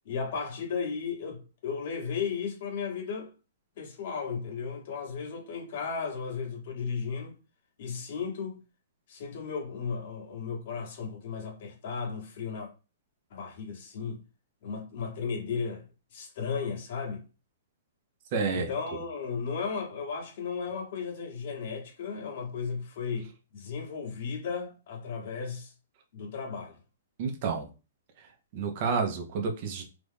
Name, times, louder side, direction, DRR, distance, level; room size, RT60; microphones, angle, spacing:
voice 1, 0.0-3.3 3.8-7.4 7.8-8.6 9.1-12.7 13.3-14.2 14.6-15.8 16.1-17.2 18.5-25.7 26.1-26.8, left 5 dB, 50° left, 1.3 m, -35 dB
voice 2, 18.3-18.7 27.2-27.7 28.5-29.8, right 5 dB, 40° right, 0.8 m, -29 dB
3.0 x 2.5 x 3.5 m
hypercardioid pair, 160°, 0 cm